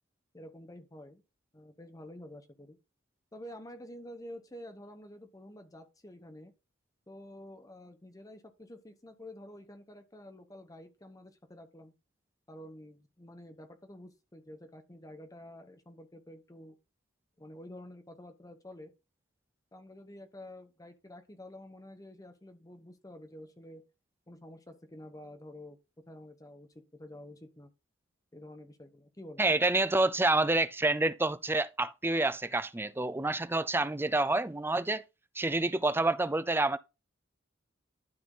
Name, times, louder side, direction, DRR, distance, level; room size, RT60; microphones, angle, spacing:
voice 1, 0.3-1.2 1.5-2.8 3.3-6.5 7.1-11.9 12.5-16.8 17.4-18.9 19.7-23.8 24.3-25.8 26.1-27.7 28.3-29.5, left 1 dB, 20° left, 0.9 m, -49 dB
voice 2, 29.4-35.0 35.4-36.8, right 2 dB, 10° right, 0.5 m, -28 dB
12.0 x 4.2 x 3.8 m
head